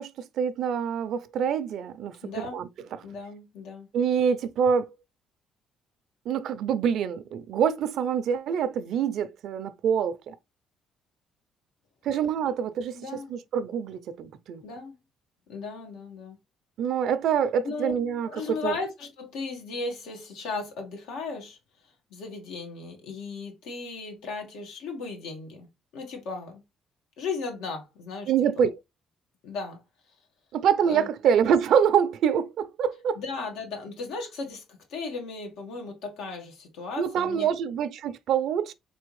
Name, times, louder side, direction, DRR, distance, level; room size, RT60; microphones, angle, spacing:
voice 1, 0.0-2.7 3.9-4.9 6.3-10.4 12.0-14.6 16.8-18.8 28.3-28.8 30.5-33.2 37.0-38.7, right 8 dB, 65° right, 0.5 m, -26 dB
voice 2, 2.2-2.6 3.0-3.9 12.9-13.3 14.6-15.0 15.5-16.4 17.6-17.9 18.2-21.6 22.1-25.7 25.9-26.6 27.2-28.3 28.6-28.7 29.4-29.8 30.9-31.1 33.1-37.5, left 4 dB, 85° left, 1.5 m, -36 dB
4.2 x 3.4 x 3.1 m
cardioid pair, 120°, 0 cm